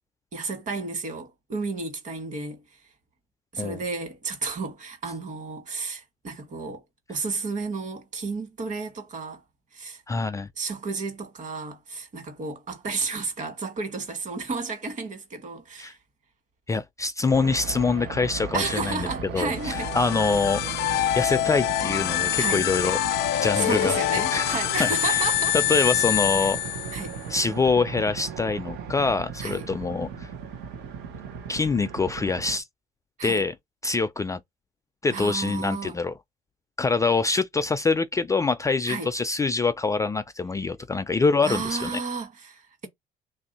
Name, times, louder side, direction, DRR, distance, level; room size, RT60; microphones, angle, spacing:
voice 1, 0.3-2.6 3.5-6.8 7.1-9.4 9.7-10.0 10.6-16.0 18.5-19.9 22.4-22.7 23.6-25.6 26.4-26.5 26.9-27.2 29.4-29.7 33.2-33.5 35.1-36.0 38.9-39.1 41.4-42.9, right 4 dB, 45° right, 1.5 m, -32 dB
voice 2, 10.1-10.5 15.8-15.9 16.7-19.1 19.3-20.6 21.1-23.0 23.4-24.0 24.3-24.5 24.8-25.2 25.7-26.6 27.3-30.3 31.5-32.6 33.2-33.5 33.8-34.4 35.0-36.1 36.8-41.9, left 4 dB, 20° left, 0.3 m, -25 dB
sound 1, 17.2-28.9, right 11 dB, 70° right, 0.5 m, -44 dB
sound 2, 17.3-32.6, right 5 dB, 85° right, 0.9 m, -37 dB
sound 3, 19.5-27.2, left 15 dB, 85° left, 0.5 m, -26 dB
3.2 x 2.6 x 4.1 m
cardioid pair, 110°, 17 cm